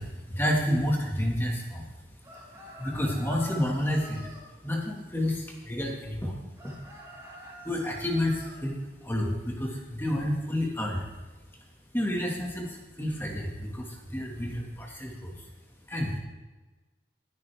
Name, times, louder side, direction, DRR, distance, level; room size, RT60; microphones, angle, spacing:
voice 1, 0.0-4.3 4.6-6.4 6.6-6.8 7.3-11.1 11.5-15.6 15.8-16.2, left 1 dB, 10° left, -1 dB, 1.7 m, -30 dB
sound 1, 2.2-4.5 6.6-8.6, equal, 15° right, 3.5 m, -46 dB
20.5 x 9.4 x 3.4 m, 1.2 s
head